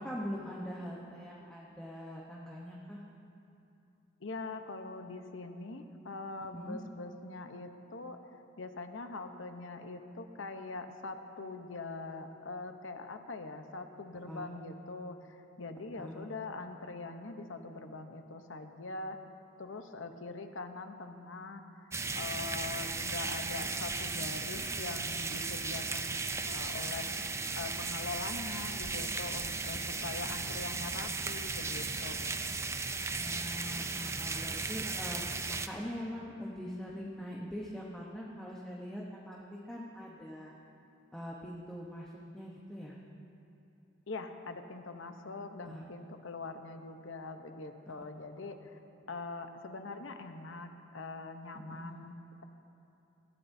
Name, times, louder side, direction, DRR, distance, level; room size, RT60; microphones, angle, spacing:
voice 1, 0.0-3.0 6.5-6.8 14.3-14.5 15.9-16.3 33.2-40.5 41.1-43.0 45.6-45.9 51.7-51.9, equal, 5° left, -4 dB, 1.0 m, -42 dB
voice 2, 4.2-8.2 8.6-19.2 19.6-21.6 22.1-27.1 27.6-32.4 44.1-48.8 49.1-52.1, left 3 dB, 75° left, 7 dB, 0.9 m, -43 dB
sound 1, 21.9-35.7, right 4 dB, 15° right, 0.4 m, -36 dB
20.5 x 15.0 x 2.7 m, 2.7 s
head